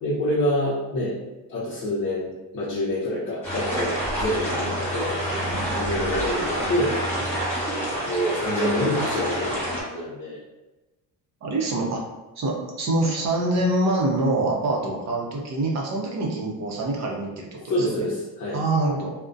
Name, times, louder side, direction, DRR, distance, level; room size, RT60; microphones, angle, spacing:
voice 1, 0.0-1.2 1.5-5.2 5.7-7.0 8.1-10.4 14.8-14.9 17.7-18.6, left 1 dB, 45° left, -8 dB, 0.7 m, -27 dB
sound 1, 3.4-9.8, right 1 dB, 5° left, 0.9 m, -27 dB
voice 2, 11.4-12.0 12.4-18.1 18.5-19.1, right 2 dB, 40° right, -1 dB, 0.6 m, -25 dB
2.3 x 2.1 x 2.5 m, 1.1 s
cardioid pair, 115°, 41 cm